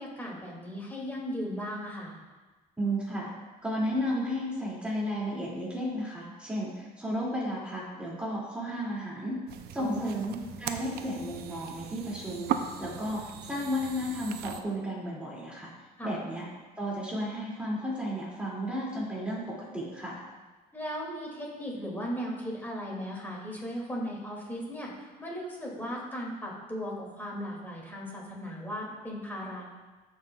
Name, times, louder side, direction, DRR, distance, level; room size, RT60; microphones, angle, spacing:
voice 1, 0.0-2.1 9.8-10.2 16.0-16.1 20.7-29.6, equal, 10° left, -3 dB, 2.4 m, -37 dB
voice 2, 2.8-3.3 3.6-9.4 9.7-13.2 13.5-15.7 16.0-16.5 16.8-20.2, equal, 5° right, -6 dB, 2.4 m, -33 dB
sound 1, 9.5-14.6, right 9 dB, 70° right, 0.5 m, -38 dB
13.0 x 5.6 x 2.3 m, 1.2 s
cardioid pair, 110°, 17 cm